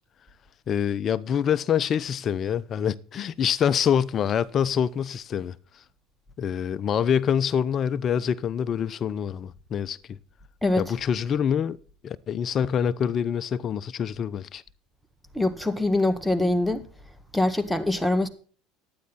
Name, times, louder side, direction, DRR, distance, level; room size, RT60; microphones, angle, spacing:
voice 1, 0.7-5.5 6.4-10.2 10.8-11.8 12.0-14.6, left 8 dB, 45° left, 0.7 m, -25 dB
voice 2, 10.6-10.9 15.3-16.9 17.3-18.3, left 2 dB, ahead, 1.6 m, -24 dB
12.0 x 9.6 x 4.1 m
hypercardioid pair, 85°, 0 cm